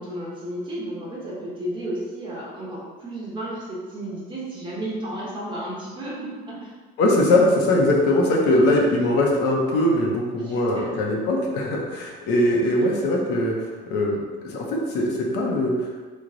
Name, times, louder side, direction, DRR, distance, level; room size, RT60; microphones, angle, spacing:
voice 1, 0.0-6.7 10.4-10.9, right 1 dB, 25° right, -6 dB, 0.9 m, -33 dB
voice 2, 7.0-16.0, left 1 dB, 65° left, -1 dB, 0.7 m, -21 dB
3.1 x 2.2 x 3.8 m, 1.4 s
cardioid pair, 145°, 18 cm